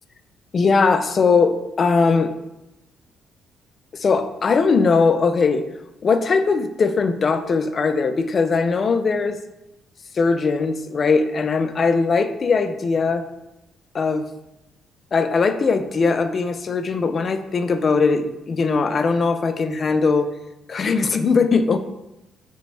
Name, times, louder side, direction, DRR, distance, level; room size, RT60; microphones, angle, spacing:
voice 1, 0.5-2.3 3.9-5.6 6.0-9.4 10.1-13.2 13.9-14.2 15.1-20.3 20.7-21.8, left 4 dB, 45° left, 10 dB, 0.3 m, -20 dB
5.0 x 2.1 x 3.2 m, 0.92 s
cardioid pair, 90°, 0 cm